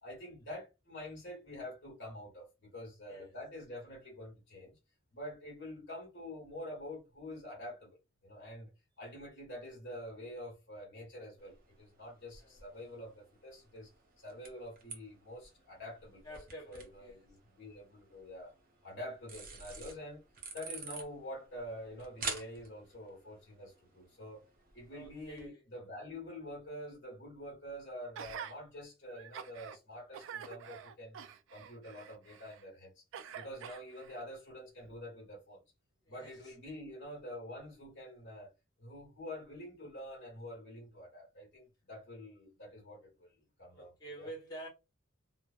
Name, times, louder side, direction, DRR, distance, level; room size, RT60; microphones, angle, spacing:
voice 1, 0.0-4.8 5.1-8.0 8.2-8.7 9.0-13.9 14.2-16.3 16.7-18.5 18.8-20.2 20.5-24.5 24.7-33.0 33.3-35.6 36.1-38.5 38.8-44.3, left 1 dB, 60° left, 1.3 m, -47 dB
sound 1, 11.4-25.5, right 4 dB, 45° right, 0.7 m, -49 dB
voice 2, 16.2-17.3 24.9-25.6 36.0-36.5 43.7-44.7, right 1 dB, 20° left, 1.0 m, -49 dB
Gasp, 28.2-28.5 29.1-29.8 30.1-32.6 33.1-34.2 34.8-34.9, right 8 dB, 65° right, 0.3 m, -47 dB
3.2 x 2.0 x 2.4 m
head